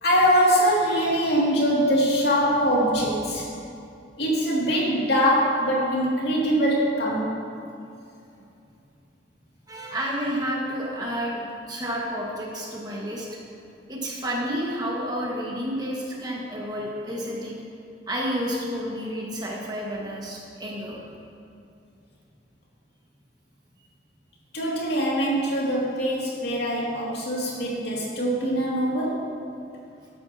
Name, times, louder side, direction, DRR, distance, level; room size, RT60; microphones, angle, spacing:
voice 1, 0.0-3.5 4.2-7.4 24.5-29.4, equal, 65° left, -5 dB, 2.6 m, -23 dB
voice 2, 9.7-13.3 13.9-17.6 18.1-21.0, equal, 25° right, -4 dB, 1.8 m, -30 dB
14.5 x 11.0 x 2.9 m, 2.6 s
head